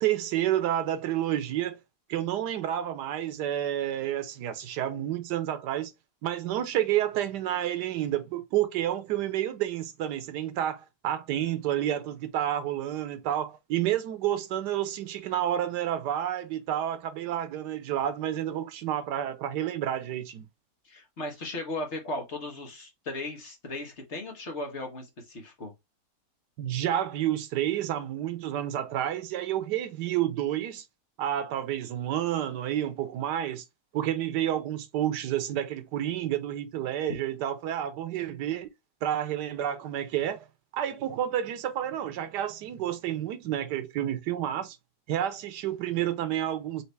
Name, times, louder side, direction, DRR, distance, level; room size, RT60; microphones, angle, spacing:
voice 1, 0.0-1.8 2.1-5.9 6.2-20.5 26.6-30.8 31.2-33.6 33.9-38.7 39.0-40.5 40.7-44.8 45.1-46.8, right 11 dB, 90° right, 1.3 m, -30 dB
voice 2, 20.8-25.7, left 2 dB, 45° left, 1.4 m, -36 dB
4.4 x 2.9 x 3.2 m
omnidirectional pair, 1.8 m